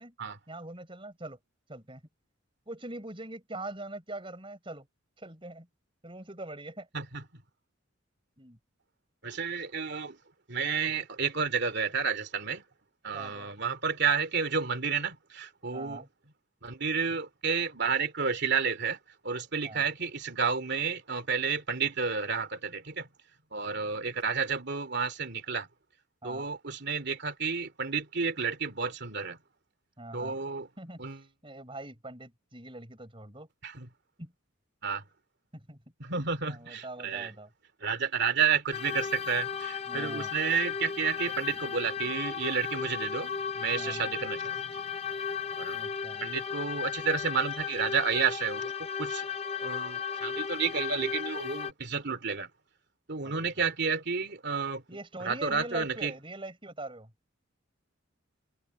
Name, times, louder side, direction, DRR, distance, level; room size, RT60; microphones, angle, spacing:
voice 1, 0.5-1.4 1.7-2.0 2.7-4.9 5.2-5.7 6.0-6.9 8.4-8.6 13.1-13.5 15.6-16.1 19.6-19.8 26.2-26.5 30.0-30.4 30.8-33.5 34.2-34.3 35.5-35.8 36.5-37.5 39.9-40.3 43.7-44.0 45.7-46.3 53.2-53.5 54.9-57.1, right 2 dB, 25° right, 7.4 m, -43 dB
voice 2, 9.2-10.2 10.5-12.6 13.0-16.0 16.6-19.0 19.2-23.1 23.5-25.7 26.2-29.4 30.1-30.7 31.0-31.2 33.6-33.9 34.8-35.0 36.0-37.3 37.8-44.6 45.5-45.8 46.2-49.2 49.6-52.5 53.1-54.8 55.2-56.1, right 5 dB, 55° right, 2.8 m, -31 dB
sound 1, 38.7-51.7, left 7 dB, 30° left, 0.9 m, -35 dB
head